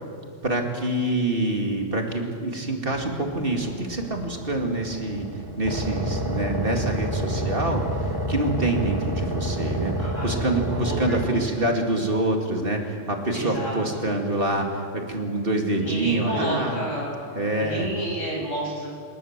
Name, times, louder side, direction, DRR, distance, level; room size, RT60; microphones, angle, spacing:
voice 1, 0.4-5.3 5.6-9.9 10.2-16.8 17.4-17.9, right 2 dB, 45° right, 2 dB, 2.6 m, -26 dB
sound 1, 2.9-11.3, equal, 15° right, 1.9 m, -29 dB
voice 2, 10.0-11.5 13.3-14.0 15.8-17.2 17.5-18.9, right 1 dB, 70° left, -2 dB, 7.9 m, -31 dB
24.5 x 20.0 x 7.5 m, 2.2 s
omnidirectional pair, 1.3 m